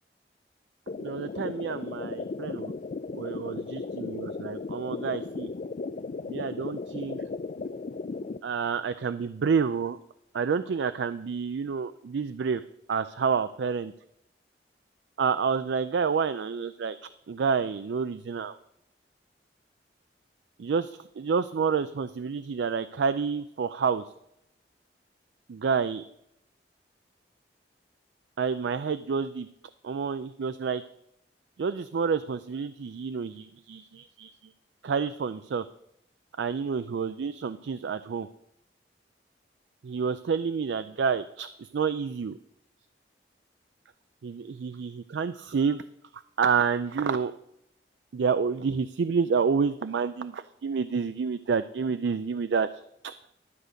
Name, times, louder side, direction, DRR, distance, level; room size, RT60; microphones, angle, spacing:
sound 1, 0.9-8.4, left 3 dB, 45° left, 0.4 m, -36 dB
voice 1, 1.0-2.7 3.1-5.5 6.3-7.2 8.4-10.0 10.3-12.6 12.9-13.9 15.2-17.0 17.3-18.6 20.6-24.0 25.5-26.0 28.4-29.5 29.8-30.8 31.6-34.5 34.8-35.7 36.4-38.3 39.8-42.4 44.2-45.8 46.4-47.3 48.1-53.1, right 6 dB, 80° right, 12 dB, 0.4 m, -29 dB
12.5 x 8.0 x 5.1 m, 0.80 s
head